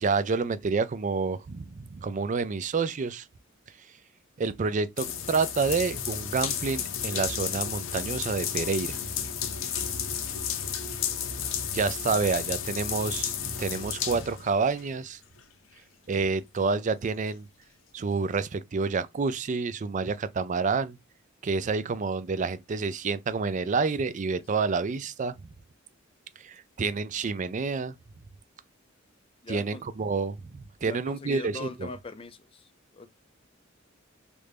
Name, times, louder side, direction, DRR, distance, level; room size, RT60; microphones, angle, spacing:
voice 1, 0.0-3.3 4.4-9.0 11.7-15.2 16.1-17.5 17.9-21.0 21.4-25.3 26.4-27.9 29.5-31.9, right 4 dB, 40° right, 0.4 m, -28 dB
sound 1, 5.0-14.9 15.4-15.5 16.1-16.3, left 8 dB, 70° left, 0.6 m, -32 dB
voice 2, 10.9-11.3 24.6-24.7 29.4-29.8 30.8-33.1, left 3 dB, 25° left, 0.5 m, -42 dB
3.2 x 2.5 x 3.3 m
head